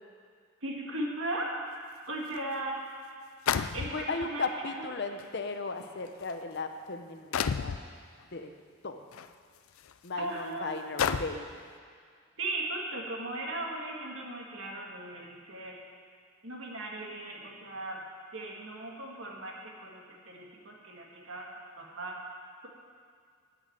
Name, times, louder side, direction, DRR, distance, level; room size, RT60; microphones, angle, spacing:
voice 1, 0.6-1.5 2.1-2.8 3.7-4.5 4.8-4.9 10.2-10.8 12.4-15.8 16.4-18.0 18.3-21.5 21.8-22.2, right 2 dB, 70° right, -1 dB, 2.0 m, -37 dB
sound 1, 2.4-2.5 3.5-4.3 5.2-5.3 6.1-6.3 7.3-7.8 9.1-9.3 9.9-10.0 11.0-11.5, left 7 dB, 80° left, 0.4 m, -30 dB
voice 2, 3.9-7.8 8.3-8.5 8.8-9.1 10.0-11.6, left 3 dB, 55° left, 6 dB, 0.8 m, -36 dB
8.9 x 8.6 x 8.8 m, 2.1 s
head